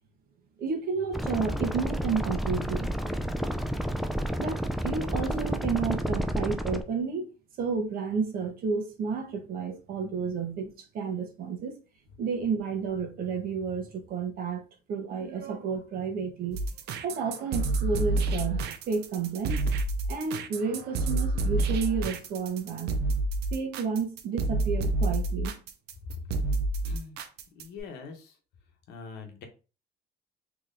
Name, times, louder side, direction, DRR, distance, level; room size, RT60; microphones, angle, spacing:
voice 1, 0.6-3.1 4.4-7.3 7.6-11.7 12.2-14.6 14.9-16.6 17.0-19.7 20.1-23.0 23.5-25.6, right 5 dB, 60° right, 1.0 m, -31 dB
sound 1, 1.1-6.8, equal, ahead, 0.3 m, -30 dB
sound 2, 16.5-27.8, right 2 dB, 75° right, 0.5 m, -28 dB
voice 2, 26.8-27.2 27.5-28.3 28.9-29.4, left 5 dB, 80° left, 1.0 m, -42 dB
3.7 x 3.0 x 2.6 m
cardioid pair, 110°, 17 cm